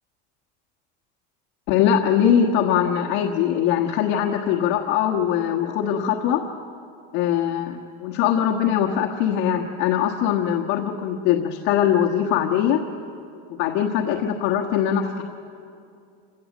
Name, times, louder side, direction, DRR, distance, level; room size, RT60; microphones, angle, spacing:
voice 1, 1.7-6.4 7.1-12.8 13.6-15.2, left 9 dB, 65° left, 1 dB, 1.4 m, -21 dB
26.5 x 17.0 x 7.3 m, 2.5 s
cardioid pair, 160°, 21 cm